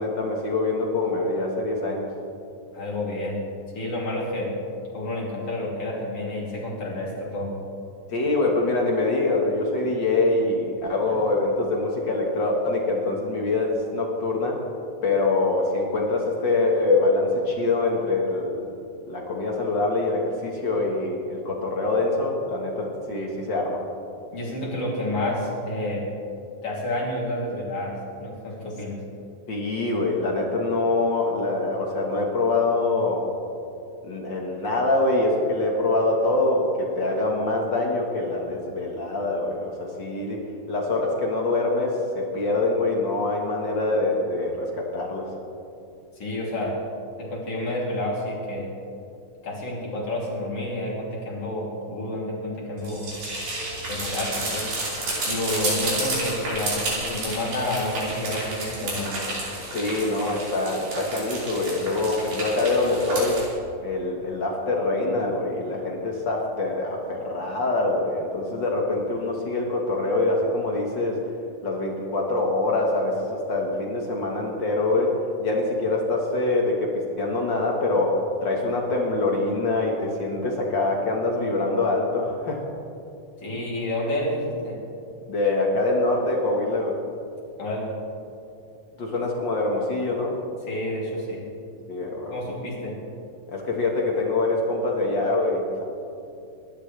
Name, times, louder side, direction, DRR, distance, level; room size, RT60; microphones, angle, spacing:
voice 1, 0.0-2.1 8.1-14.6 15.0-18.6 19.1-23.8 29.5-33.2 34.0-40.4 40.7-45.3 59.7-63.4 63.8-71.2 71.6-75.1 75.4-76.9 77.2-82.6 85.3-86.9 89.0-90.4 91.9-92.3 93.5-95.8, left 2 dB, 65° left, -1 dB, 1.1 m, -24 dB
voice 2, 2.7-3.4 3.7-4.5 4.9-7.5 24.3-26.0 26.6-29.0 46.2-46.7 47.2-48.7 49.4-53.1 53.9-54.8 55.2-59.2 83.4-84.8 87.6-87.9 90.7-91.4 92.3-92.9, left 1 dB, 40° left, -4 dB, 3.8 m, -29 dB
sound 1, 52.8-63.4, right 2 dB, 60° right, 6.4 m, -31 dB
27.5 x 12.5 x 3.4 m, 2.6 s
omnidirectional pair, 4.6 m